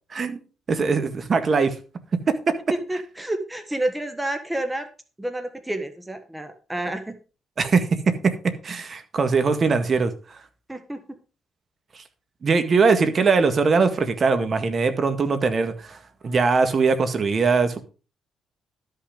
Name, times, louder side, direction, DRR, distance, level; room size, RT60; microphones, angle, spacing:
voice 1, 0.7-1.7 2.5-2.6 7.6-10.1 12.4-16.0 16.2-17.8, right 4 dB, 45° right, 9 dB, 1.8 m, -21 dB
voice 2, 2.9-4.9 5.2-7.1 10.7-11.0, right 1 dB, 10° right, 7 dB, 1.3 m, -29 dB
12.5 x 5.9 x 5.2 m, 0.35 s
cardioid pair, 90°, 0 cm